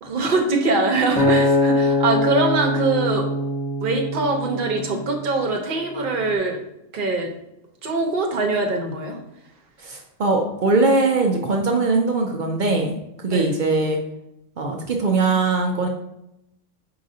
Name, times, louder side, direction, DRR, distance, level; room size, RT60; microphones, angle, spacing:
voice 1, 0.0-3.3 3.8-6.6 6.9-7.3 7.8-9.2 13.3-13.6, right 3 dB, 45° right, 2 dB, 0.8 m, -23 dB
Acoustic guitar, 1.2-5.5 6.1-6.4, left 1 dB, 10° left, 0.6 m, -22 dB
voice 2, 9.8-14.0 14.6-15.9, right 3 dB, 70° right, 2 dB, 0.4 m, -21 dB
4.9 x 3.8 x 2.6 m, 0.85 s
omnidirectional pair, 1.4 m